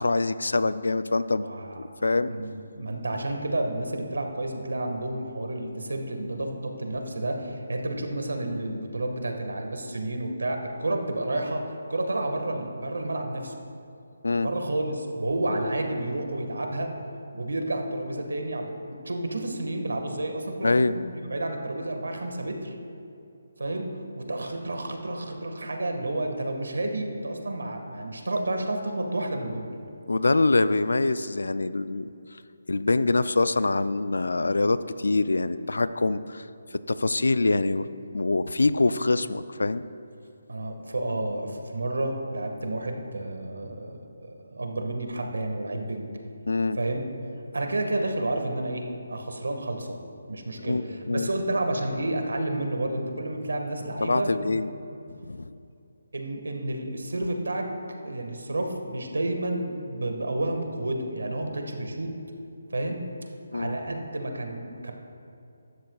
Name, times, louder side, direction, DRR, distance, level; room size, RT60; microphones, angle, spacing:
voice 1, 0.0-1.5 2.0-2.3 14.2-14.5 20.6-21.0 30.1-32.1 32.7-36.4 36.9-37.9 38.1-39.8 46.5-46.8 50.6-51.3 54.0-54.7 55.1-55.6 63.5-63.8, left 3 dB, 85° left, 14 dB, 0.4 m, -24 dB
voice 2, 1.4-1.8 2.3-11.6 11.9-13.5 14.4-16.9 17.3-22.7 23.6-23.9 24.2-29.7 40.5-46.1 46.7-47.1 47.5-50.0 50.3-54.6 56.1-57.7 58.0-62.1 62.7-63.0 63.5-64.9, right 1 dB, 85° right, 4 dB, 1.6 m, -30 dB
15.5 x 12.5 x 2.4 m, 2.6 s
figure-of-eight pair, 160°, 0 cm